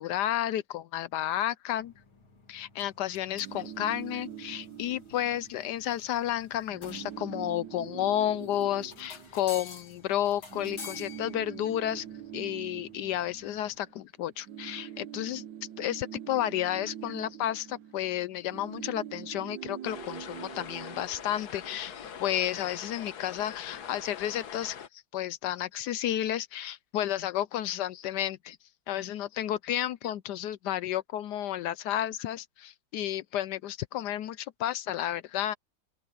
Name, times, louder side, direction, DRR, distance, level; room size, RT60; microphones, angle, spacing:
voice 1, 0.0-1.9 2.5-12.1 12.3-15.4 15.8-28.6 28.9-35.5, left 12 dB, 75° left, 1.0 m, -32 dB
sound 1, 1.8-13.8, left 5 dB, 90° left, 4.0 m, -51 dB
sound 2, 3.3-5.8 6.1-6.3 6.6-10.0 10.5-14.0 14.3-21.9, right 10 dB, 70° right, 1.4 m, -44 dB
sound 3, 19.8-24.9, left 8 dB, 55° left, 1.6 m, -44 dB
open air
omnidirectional pair, 2.2 m